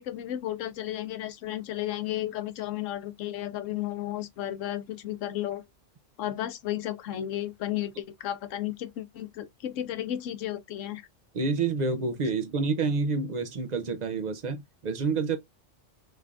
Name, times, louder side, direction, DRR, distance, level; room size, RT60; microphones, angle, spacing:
voice 1, 0.0-5.6 6.2-11.0, left 12 dB, 85° left, 1.0 m, -33 dB
voice 2, 11.3-15.4, right 4 dB, 50° right, 0.5 m, -28 dB
3.5 x 3.3 x 2.4 m
omnidirectional pair, 1.3 m